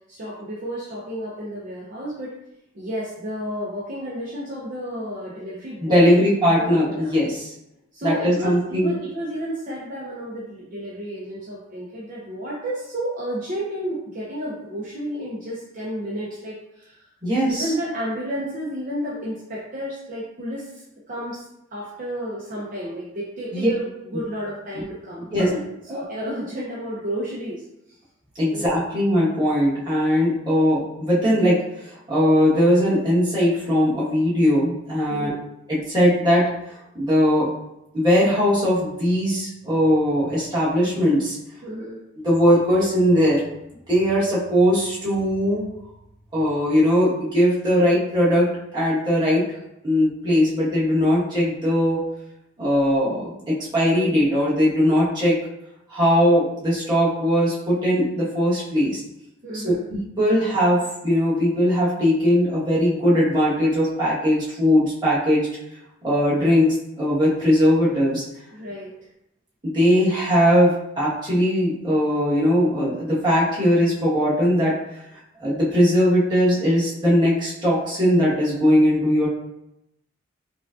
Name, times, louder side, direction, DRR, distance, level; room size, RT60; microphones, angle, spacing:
voice 1, 0.1-2.4 2.7-7.1 7.9-17.0 17.4-25.6 25.9-27.6 28.5-28.7 35.1-35.4 41.6-42.0 59.4-59.8 68.5-68.9, equal, 45° right, -7 dB, 0.7 m, -31 dB
voice 2, 5.8-7.5 8.0-8.9 17.2-17.7 23.5-23.7 25.3-25.5 25.9-26.0 28.4-35.3 35.7-36.4 36.9-37.5 37.9-41.4 42.2-43.4 43.9-45.6 46.3-48.5 48.7-49.4 49.8-52.0 52.6-55.4 55.9-59.0 59.6-65.5 66.0-68.2 69.6-74.7 75.4-79.3, equal, 20° right, -9 dB, 1.4 m, -20 dB
5.0 x 2.3 x 2.5 m, 0.85 s
head